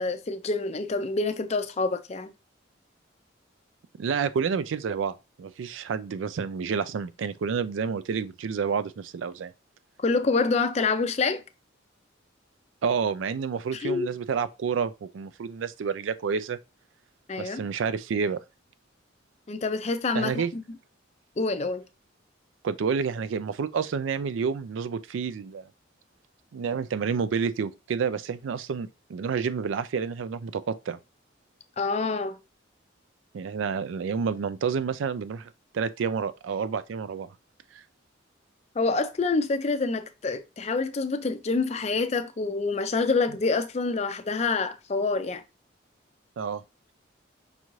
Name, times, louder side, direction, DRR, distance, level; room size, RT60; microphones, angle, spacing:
voice 1, 0.0-2.3 10.0-11.4 13.7-14.1 17.3-17.6 19.5-20.6 21.4-21.8 31.8-32.4 38.8-45.4, left 3 dB, 35° left, 0.4 m, -27 dB
voice 2, 4.0-9.5 12.8-16.6 17.4-18.4 20.1-20.5 22.6-25.7 26.5-31.0 33.3-37.3 37.7-37.8 43.3-43.4 46.4-46.6, right 6 dB, 80° right, 0.4 m, -29 dB
5.4 x 2.5 x 3.0 m
head